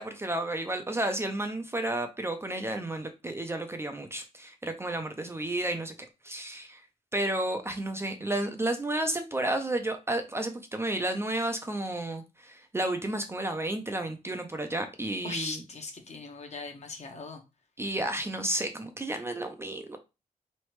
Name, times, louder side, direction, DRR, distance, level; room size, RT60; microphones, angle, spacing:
voice 1, 0.0-5.9 6.2-6.8 7.1-15.6 17.8-20.0, right 1 dB, 20° right, 0.4 m, -32 dB
voice 2, 15.2-17.4, left 3 dB, 50° left, 0.9 m, -39 dB
4.0 x 3.2 x 3.1 m
wide cardioid pair, 175°, 14 cm